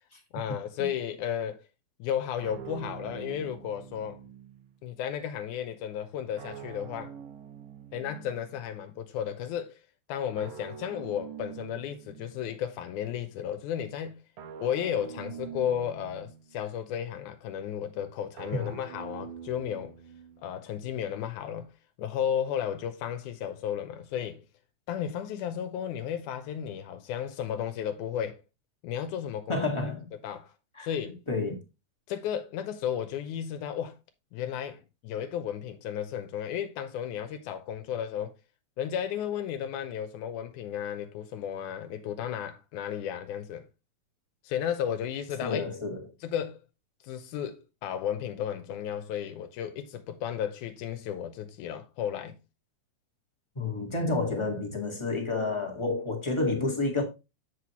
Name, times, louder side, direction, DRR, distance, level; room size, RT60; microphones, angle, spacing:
voice 1, 0.3-1.6 2.0-4.2 4.8-7.1 7.9-9.8 10.1-14.2 14.6-20.0 20.4-21.7 22.0-24.4 24.9-28.4 28.8-29.6 30.2-30.5 30.8-31.2 32.1-34.0 34.3-38.4 38.8-43.7 44.4-45.7 46.2-46.6 47.0-52.4, left 9 dB, 90° left, 2.2 m, -33 dB
sound 1, 2.4-4.8 6.4-8.8 10.4-12.6 14.4-16.7 18.4-20.7, right 7 dB, 85° right, 2.5 m, -45 dB
voice 2, 29.5-30.1 30.7-30.9 31.3-31.6 45.4-46.0 53.5-57.0, left 3 dB, 15° left, 0.9 m, -29 dB
7.7 x 6.3 x 3.0 m
omnidirectional pair, 3.4 m